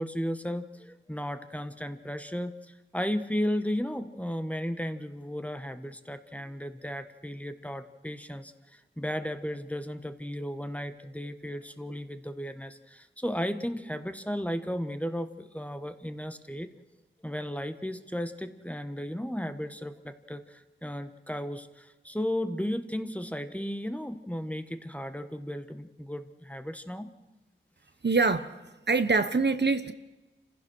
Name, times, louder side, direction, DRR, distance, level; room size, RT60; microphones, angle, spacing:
voice 1, 0.0-16.7 17.2-27.1, equal, 5° left, 9 dB, 1.2 m, -35 dB
voice 2, 28.0-28.5 28.9-29.9, right 4 dB, 55° right, 10 dB, 1.0 m, -24 dB
28.0 x 15.5 x 6.3 m, 1.1 s
wide cardioid pair, 60°, 21 cm